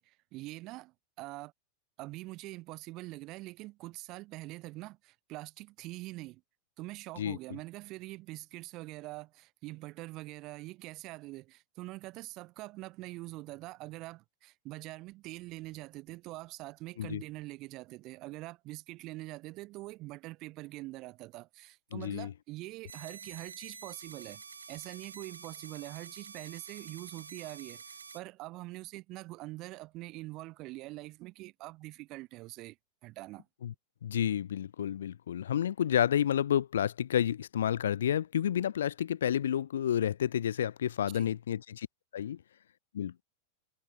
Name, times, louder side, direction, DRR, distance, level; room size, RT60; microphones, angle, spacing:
voice 1, 0.0-1.5 2.0-6.4 6.8-24.4 24.7-32.8 33.0-33.5 41.1-41.3, right 20 dB, 40° right, 2.9 m, -44 dB
voice 2, 21.9-22.3 33.6-33.7 34.0-41.9 42.1-42.4 42.9-43.2, left 10 dB, 65° left, 1.4 m, -30 dB
sound 1, 22.9-28.2, right 6 dB, 75° right, 3.9 m, -48 dB
figure-of-eight pair, 90°, 0 cm